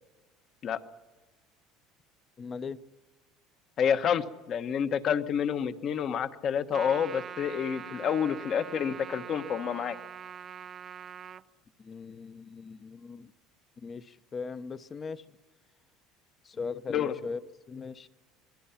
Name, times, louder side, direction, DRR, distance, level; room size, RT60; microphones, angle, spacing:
voice 1, 2.4-2.8 11.8-13.3 13.8-15.2 16.4-17.4 17.7-18.1, left 5 dB, 30° left, 0.9 m, -39 dB
voice 2, 3.8-10.0 16.9-17.2, left 8 dB, 45° left, 1.2 m, -29 dB
Trumpet, 6.7-11.4, right 8 dB, 40° right, 0.7 m, -43 dB
26.5 x 20.5 x 5.9 m
supercardioid pair, 110°, 0 cm